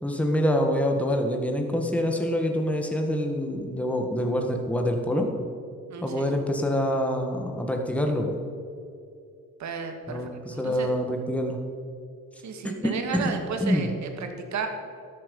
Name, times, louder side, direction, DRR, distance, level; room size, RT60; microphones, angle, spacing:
voice 1, 0.0-5.3 6.0-8.3 10.1-11.6 12.6-13.3 13.6-13.9, equal, 5° left, 3 dB, 1.6 m, -26 dB
voice 2, 5.9-6.3 9.6-10.2 10.5-10.9 12.4-14.7, right 5 dB, 70° right, 5 dB, 1.8 m, -33 dB
13.0 x 8.9 x 5.4 m, 2.4 s
cardioid pair, 90°, 30 cm